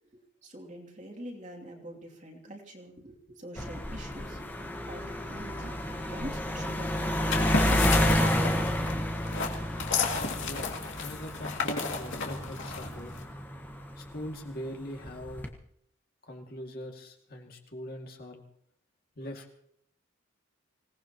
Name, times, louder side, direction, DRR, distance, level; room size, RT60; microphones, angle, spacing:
voice 1, 0.1-4.5 4.8-5.7 6.1-9.0, right 1 dB, 35° right, 0 dB, 2.8 m, -45 dB
sound 1, 3.6-14.3 15.1-15.5, equal, 10° left, 1.4 m, -30 dB
sound 2, 7.3-13.2, left 4 dB, 60° left, 2.5 m, -33 dB
voice 2, 10.3-13.1 14.0-15.5 16.2-18.4 19.2-19.5, equal, 45° left, 1 dB, 2.4 m, -42 dB
25.5 x 18.5 x 3.0 m, 0.69 s
head